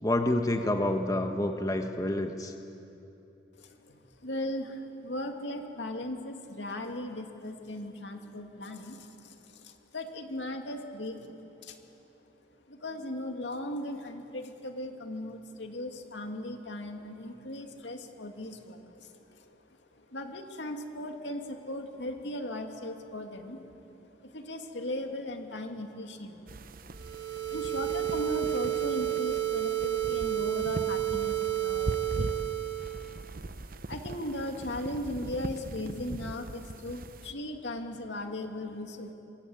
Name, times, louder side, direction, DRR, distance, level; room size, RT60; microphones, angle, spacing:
voice 1, 0.0-2.5, left 1 dB, 20° left, 5 dB, 1.3 m, -28 dB
voice 2, 3.6-11.8 12.7-19.6 19.9-26.5 26.8-26.9 27.3-32.6 32.8-39.1, left 1 dB, 80° left, 4 dB, 2.4 m, -38 dB
sound 1, 26.5-37.3, right 2 dB, 50° right, 0.8 m, -41 dB
sound 2, 26.9-33.1, right 14 dB, 80° right, 4.1 m, -31 dB
25.5 x 23.5 x 8.7 m, 2.9 s
head